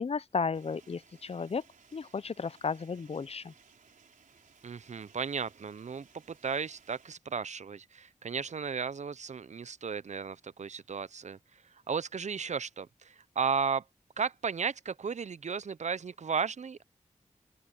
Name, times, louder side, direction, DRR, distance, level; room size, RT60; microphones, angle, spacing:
voice 1, 0.0-1.6 1.9-3.5, left 5 dB, 50° left, 0.6 m, -34 dB
sound 1, 0.5-7.2, right 6 dB, 85° right, 4.1 m, -61 dB
voice 2, 4.6-13.8 14.2-16.8, right 6 dB, 60° right, 0.7 m, -35 dB
open air
cardioid pair, 45°, 13 cm